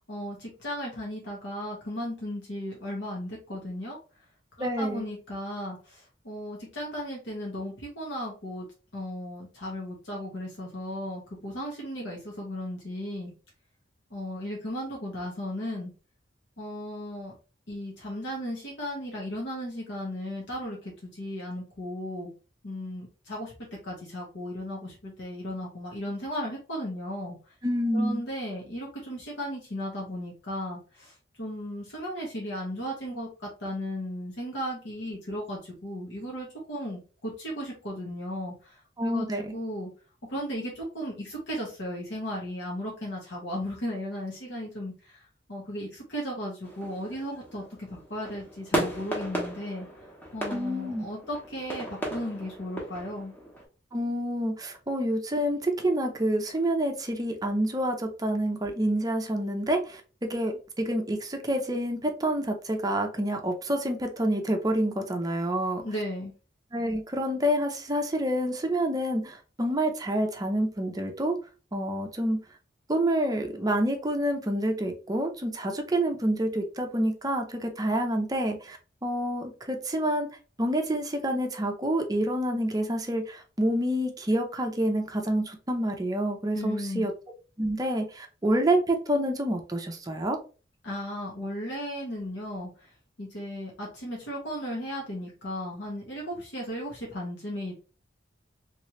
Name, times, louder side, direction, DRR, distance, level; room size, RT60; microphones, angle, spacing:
voice 1, 0.1-4.0 4.6-8.6 8.9-13.3 14.1-15.9 16.6-17.3 17.7-22.3 22.6-23.5 23.8-27.4 27.9-39.9 40.3-45.2 45.5-49.9 50.3-53.3 65.8-66.3 86.5-87.1 90.8-92.9 93.2-97.7, equal, 70° left, -3 dB, 1.2 m, -35 dB
voice 2, 4.6-5.0 27.6-28.2 39.0-39.5 50.5-51.0 53.9-60.0 60.3-65.8 66.7-71.4 71.7-72.4 72.9-80.3 80.6-87.1 87.6-90.4, right 1 dB, 20° right, 4 dB, 0.6 m, -28 dB
sound 1, 46.6-53.6, right 1 dB, 10° left, 0.9 m, -36 dB
3.2 x 3.0 x 3.0 m, 0.35 s
head